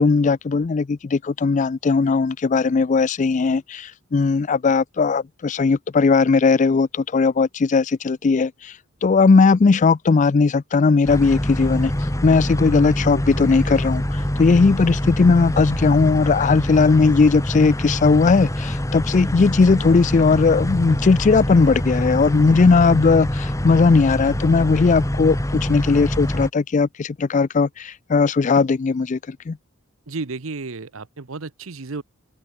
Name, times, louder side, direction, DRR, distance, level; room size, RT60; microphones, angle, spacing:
voice 1, 0.0-8.7 9.0-11.9 12.2-29.6, left 4 dB, 35° left, 0.4 m, -18 dB
sound 1, 11.1-26.5, left 1 dB, 15° left, 1.4 m, -25 dB
voice 2, 30.1-32.0, right 3 dB, 70° right, 0.9 m, -32 dB
head